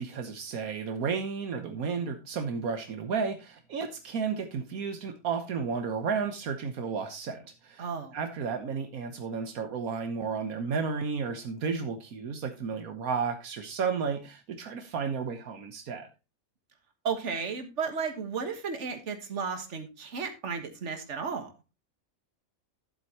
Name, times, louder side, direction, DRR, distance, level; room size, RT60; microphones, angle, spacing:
voice 1, 0.0-7.8 8.1-16.1, right 5 dB, 80° right, 7 dB, 1.4 m, -32 dB
voice 2, 7.8-8.2 17.0-21.5, right 5 dB, 55° right, 6 dB, 1.7 m, -34 dB
12.0 x 7.7 x 2.9 m, 0.28 s
omnidirectional pair, 1.5 m